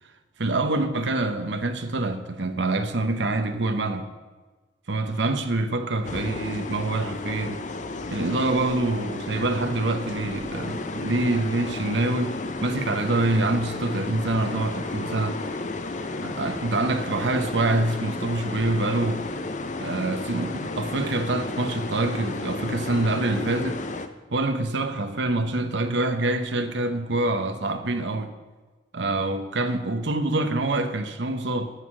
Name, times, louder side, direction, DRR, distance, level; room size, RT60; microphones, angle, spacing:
voice 1, 0.4-4.1 4.9-7.6 8.1-15.4 16.2-19.3 19.8-23.8 24.3-28.3 28.9-31.7, right 2 dB, 75° right, 0.9 m, -26 dB
sound 1, 6.0-24.1, left 2 dB, 40° left, 0.7 m, -33 dB
13.5 x 6.5 x 6.2 m
head